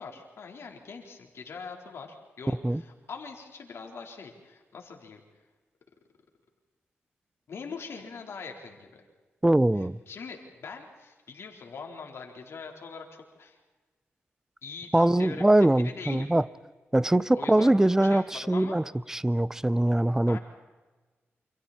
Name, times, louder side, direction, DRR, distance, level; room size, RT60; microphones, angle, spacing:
voice 1, 0.0-5.2 7.5-9.0 9.7-13.6 14.6-16.3 17.3-17.7 18.0-18.8 20.3-20.4, left 5 dB, 70° left, 4.2 m, -42 dB
voice 2, 9.4-10.0 14.9-16.4 16.9-20.4, right 1 dB, 10° right, 0.7 m, -22 dB
29.0 x 27.5 x 4.4 m
cardioid pair, 85°, 4 cm